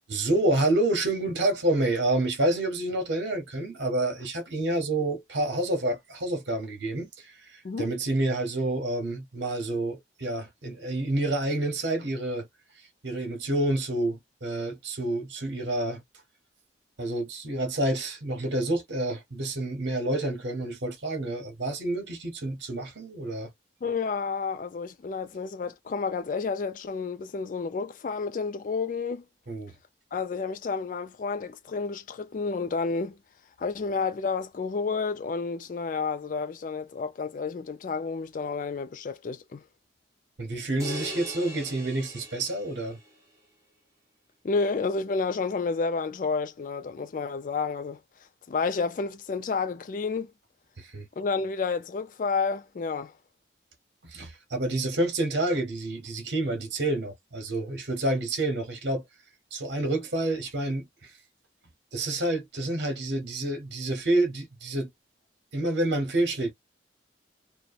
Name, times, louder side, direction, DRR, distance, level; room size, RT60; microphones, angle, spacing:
voice 1, 0.1-12.5 12.8-16.0 17.0-23.5 29.5-29.7 40.4-43.0 50.8-51.1 54.0-59.1 59.5-61.1 61.9-64.9 65.5-66.5, right 1 dB, 65° right, 0.9 m, -28 dB
voice 2, 23.8-29.2 30.1-33.2 33.6-39.6 44.4-48.0 48.5-50.3 51.2-53.1, left 4 dB, 45° left, 0.3 m, -30 dB
sound 1, 40.8-43.1, equal, 15° right, 0.8 m, -40 dB
2.7 x 2.1 x 2.4 m
head